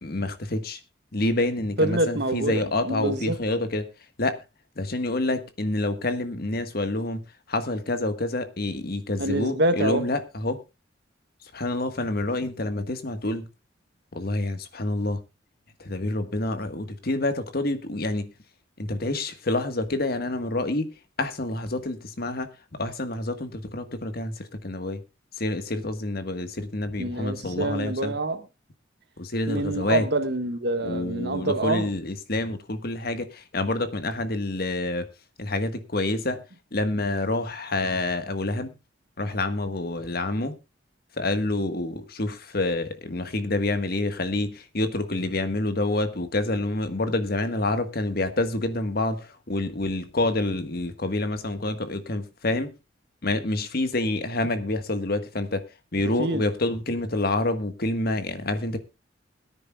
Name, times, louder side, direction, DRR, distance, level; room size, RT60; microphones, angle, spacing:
voice 1, 0.0-0.8 1.1-3.9 4.2-4.4 4.8-10.6 11.5-13.5 14.1-15.2 15.8-18.3 18.8-20.9 21.2-25.0 25.4-28.1 29.2-30.1 30.8-35.1 35.4-36.4 36.7-38.7 39.2-40.6 41.2-52.7 53.2-55.7 55.9-58.8, left 2 dB, 55° left, 1.5 m, -27 dB
voice 2, 1.8-3.3 9.2-10.0 27.0-28.4 29.5-31.9 56.2-56.4, right 2 dB, 65° right, 1.7 m, -26 dB
22.0 x 9.9 x 2.3 m
head